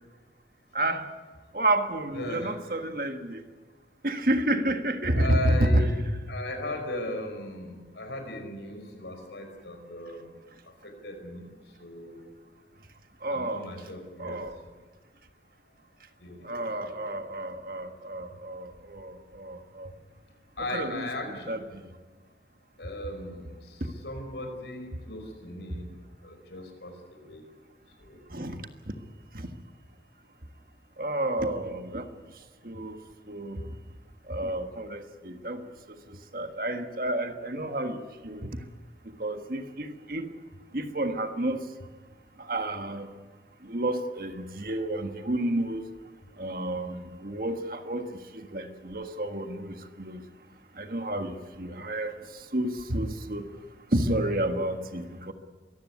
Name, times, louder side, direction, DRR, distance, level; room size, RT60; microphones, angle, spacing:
voice 1, 1.5-3.4 4.0-5.9 13.2-13.6 14.2-14.5 16.5-19.1 19.4-19.9 20.7-21.1 21.5-21.6 28.3-28.5 31.0-32.0 32.6-33.0 33.3-33.6 34.3-35.6 36.3-38.5 39.2-40.3 40.7-41.6 42.5-43.1 43.7-45.8 46.4-48.1 48.5-50.2 50.8-52.1 52.5-53.4 53.9-55.3, right 1 dB, 55° right, 7 dB, 1.6 m, -30 dB
voice 2, 2.1-2.6 5.1-6.0 6.3-10.3 11.0-11.5 11.8-12.3 13.3-14.4 16.2-17.1 20.6-21.5 22.8-23.6 24.0-26.0 26.2-27.4 28.0-28.2 46.5-46.9, left 1 dB, 80° left, 5 dB, 5.2 m, -37 dB
23.5 x 15.0 x 9.6 m, 1.4 s
head